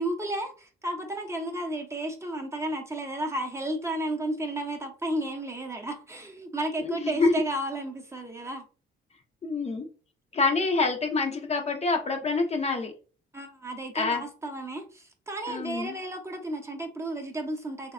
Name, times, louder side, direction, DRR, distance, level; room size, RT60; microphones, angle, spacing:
voice 1, 0.0-8.6 13.3-17.9, right 1 dB, 15° right, 2 dB, 0.6 m, -33 dB
voice 2, 6.8-7.3 9.4-9.9 10.3-12.9 13.9-14.2 15.5-16.0, left 3 dB, 35° left, 4 dB, 0.5 m, -26 dB
3.2 x 2.1 x 2.4 m, 0.37 s
cardioid pair, 90°, 20 cm